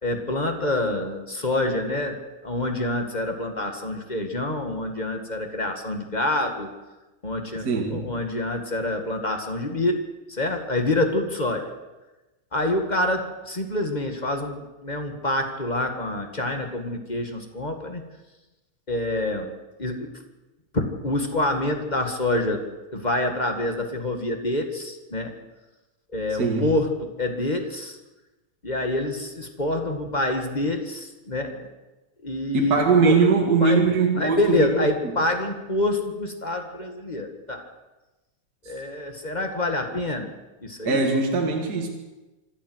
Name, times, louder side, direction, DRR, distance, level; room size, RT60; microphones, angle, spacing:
voice 1, 0.0-6.7 7.2-11.7 12.5-18.0 18.9-19.5 19.8-20.1 20.7-25.3 26.1-28.0 28.6-31.7 32.2-33.2 33.6-33.8 34.2-37.7 38.6-40.3 40.6-41.1, left 1 dB, 20° left, 5 dB, 1.4 m, -27 dB
voice 2, 7.6-8.1 26.4-26.7 32.5-34.9 40.8-41.9, right 4 dB, 35° right, 1 dB, 2.4 m, -21 dB
26.0 x 12.5 x 8.0 m, 1.1 s
omnidirectional pair, 3.3 m